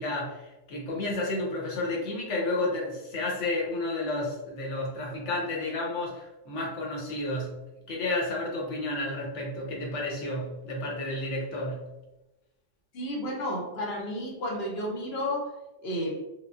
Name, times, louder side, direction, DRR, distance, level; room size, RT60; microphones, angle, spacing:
voice 1, 0.0-7.6 7.9-11.9, left 2 dB, 80° left, -2 dB, 1.1 m, -31 dB
voice 2, 12.9-15.5 15.8-16.2, equal, 60° left, -1 dB, 0.9 m, -32 dB
3.6 x 2.0 x 2.3 m, 0.99 s
omnidirectional pair, 1.2 m